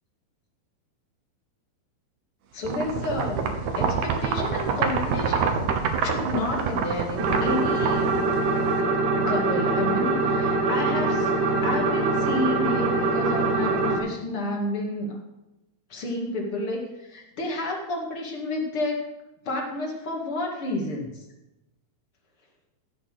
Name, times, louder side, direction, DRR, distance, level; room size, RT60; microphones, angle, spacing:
voice 1, 2.5-8.1 9.1-11.4 11.6-15.2 15.9-19.1 19.5-21.2, left 1 dB, 40° left, 0 dB, 2.4 m, -30 dB
sound 1, 2.6-8.8, right 5 dB, 60° right, 2.2 m, -27 dB
sound 2, 7.2-14.0, right 3 dB, 85° right, 3.9 m, -23 dB
15.5 x 7.0 x 6.4 m, 0.96 s
omnidirectional pair, 4.4 m